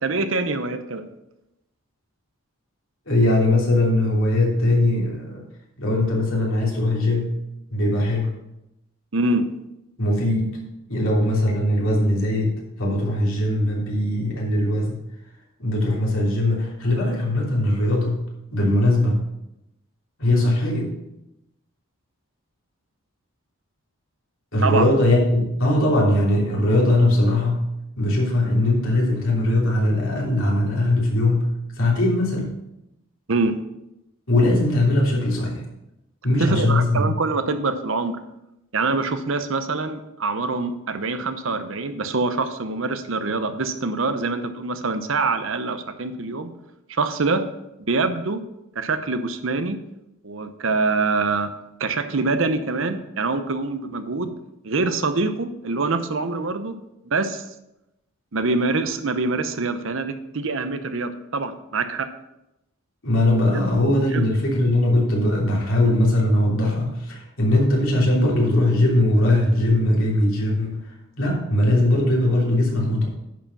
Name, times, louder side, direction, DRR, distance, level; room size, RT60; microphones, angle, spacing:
voice 1, 0.0-1.1 9.1-9.5 24.6-24.8 33.3-33.6 36.4-38.2 38.7-46.5 46.9-47.4 47.9-48.4 48.8-49.8 50.2-51.5 51.8-54.3 54.6-56.7 57.1-57.4 58.3-62.1 63.5-63.7 63.9-64.3, right 3 dB, 65° right, 9 dB, 0.7 m, -24 dB
voice 2, 3.1-5.4 5.8-7.4 7.7-8.3 10.0-10.6 10.9-15.0 15.6-18.2 18.5-19.2 20.2-20.9 24.5-27.7 28.0-31.5 31.8-32.5 34.3-35.6 36.2-37.2 63.0-70.7 71.2-73.1, left 1 dB, 70° left, -3 dB, 3.1 m, -20 dB
10.0 x 5.0 x 5.8 m, 0.88 s
head